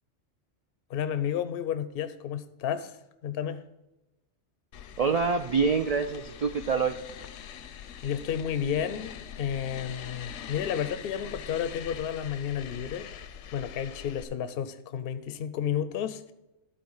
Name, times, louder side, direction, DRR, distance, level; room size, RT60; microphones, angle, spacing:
voice 1, 0.9-3.6 8.0-13.1 13.5-16.3, left 9 dB, 60° left, 0.7 m, -32 dB
sound 1, 4.7-14.2, left 8 dB, 80° left, 0.9 m, -43 dB
voice 2, 5.0-7.0, right 5 dB, 75° right, 0.3 m, -26 dB
12.0 x 4.2 x 5.5 m
omnidirectional pair, 1.2 m